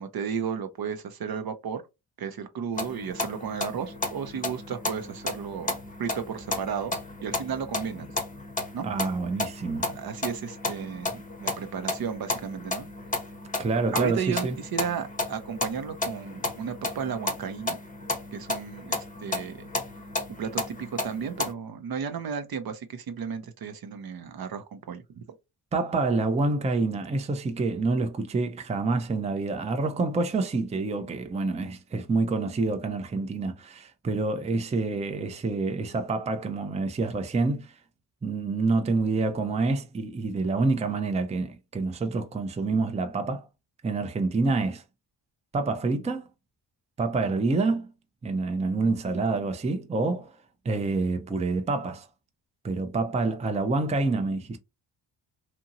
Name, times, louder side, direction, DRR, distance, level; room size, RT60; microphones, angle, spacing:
voice 1, 0.0-1.8 2.2-6.9 7.2-8.1 8.7-8.9 9.8-12.9 13.9-17.8 18.3-19.7 20.3-25.2, right 7 dB, 50° right, 0.6 m, -34 dB
sound 1, 2.8-21.5, left 2 dB, 15° left, 0.7 m, -33 dB
voice 2, 8.8-10.0 13.6-14.5 25.7-37.7 38.2-43.5 43.8-44.8 45.5-46.3 47.0-47.9 48.2-50.3 50.6-52.1 52.6-54.6, right 3 dB, 15° right, 0.5 m, -27 dB
2.8 x 2.6 x 2.5 m
supercardioid pair, 55°, 47 cm